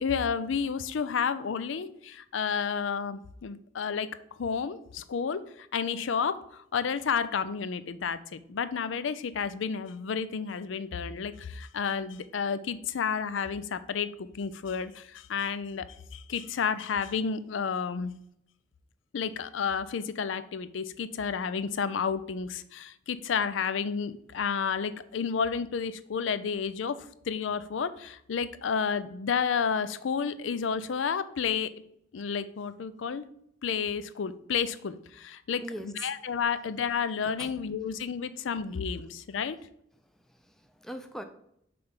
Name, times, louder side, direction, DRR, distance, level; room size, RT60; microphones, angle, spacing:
voice 1, 0.0-4.1 4.4-15.9 16.1-18.1 19.1-31.7 32.1-33.2 33.6-39.6, left 6 dB, 80° left, 14 dB, 0.4 m, -31 dB
voice 2, 35.6-36.1 37.4-37.5 40.3-41.2, equal, ahead, 7 dB, 0.5 m, -41 dB
5.9 x 3.3 x 5.4 m, 0.74 s
head